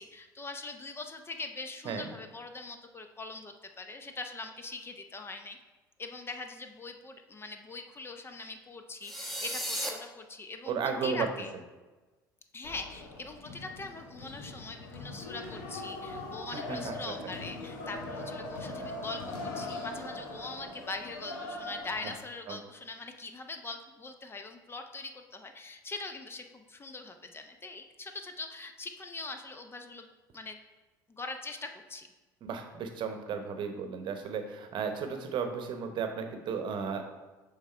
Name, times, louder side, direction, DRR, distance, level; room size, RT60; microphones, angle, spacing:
voice 1, 0.0-5.6 6.0-10.8 11.0-11.5 12.5-30.1 30.3-30.6 31.2-32.1, left 3 dB, 25° left, 6 dB, 0.7 m, -42 dB
sound 1, 9.0-9.9, equal, ahead, 1.1 m, -34 dB
voice 2, 10.7-11.3 16.5-16.9 22.5-22.6 32.4-37.0, right 6 dB, 50° right, 6 dB, 0.9 m, -34 dB
sound 2, 12.6-22.2, left 2 dB, 75° left, 1.0 m, -41 dB
6.5 x 3.6 x 4.4 m, 1.2 s
hypercardioid pair, 70°, 10 cm